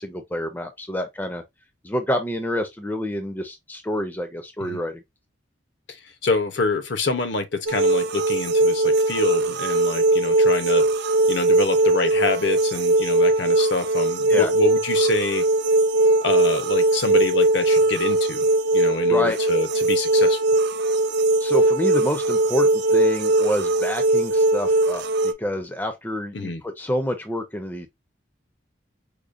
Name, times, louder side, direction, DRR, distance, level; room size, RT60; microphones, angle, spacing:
voice 1, 0.0-1.4 1.8-5.0 14.3-14.5 19.1-19.4 21.4-27.9, equal, 10° left, 0.4 m, -28 dB
voice 2, 5.9-15.4 16.2-18.5 18.7-20.4 26.3-26.6, left 3 dB, 65° left, 0.7 m, -26 dB
sound 1, 7.7-25.3, right 2 dB, 60° right, 0.4 m, -20 dB
4.9 x 2.1 x 2.5 m
head